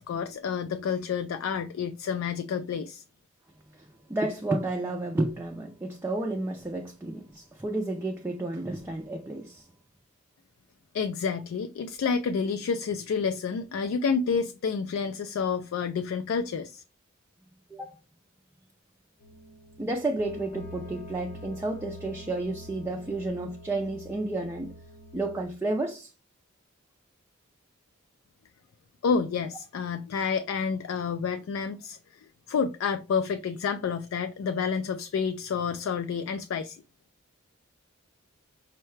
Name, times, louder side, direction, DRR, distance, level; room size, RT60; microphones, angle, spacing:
voice 1, 0.0-3.0 10.9-16.8 29.0-36.8, left 6 dB, 70° left, 0.3 m, -29 dB
voice 2, 3.7-9.7 17.7-18.0 19.8-24.7 25.1-26.1, right 2 dB, 10° right, 0.3 m, -31 dB
sound 1, 19.2-25.5, equal, 45° left, 0.8 m, -46 dB
5.5 x 2.2 x 3.1 m
head